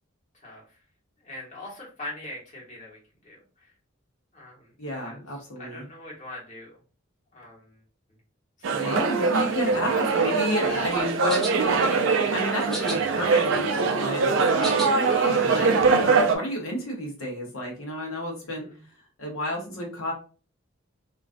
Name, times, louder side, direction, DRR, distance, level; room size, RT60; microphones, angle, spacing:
voice 1, 0.3-0.8 1.2-3.7 4.3-4.7 5.0-5.2 5.6-6.8 7.3-7.8 8.6-9.0 18.4-18.8, left 1 dB, 35° left, -4 dB, 1.0 m, -42 dB
voice 2, 4.8-5.9 8.7-18.7 19.2-20.1, equal, 85° left, 0 dB, 0.7 m, -31 dB
sound 1, 8.6-16.4, right 4 dB, 65° right, 0.4 m, -23 dB
sound 2, 10.9-11.5 12.6-13.0 13.4-14.9, right 1 dB, ahead, 0.5 m, -34 dB
2.3 x 2.2 x 2.4 m, 0.37 s
head